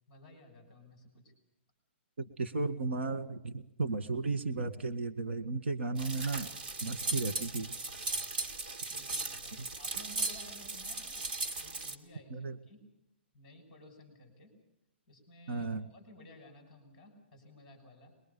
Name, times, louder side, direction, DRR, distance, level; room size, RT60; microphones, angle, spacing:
voice 1, 0.1-1.3 8.1-8.3 8.9-11.3 11.6-12.8 13.3-14.5 15.1-18.1, left 1 dB, 10° left, 4 dB, 6.3 m, -56 dB
voice 2, 2.2-6.5 6.8-7.7 12.3-12.6 15.5-15.9, right 3 dB, 85° right, 10 dB, 1.8 m, -34 dB
sound 1, 6.0-12.0, right 3 dB, 50° right, 2.5 m, -37 dB
23.5 x 22.0 x 7.0 m, 0.83 s
hypercardioid pair, 175°, 6 cm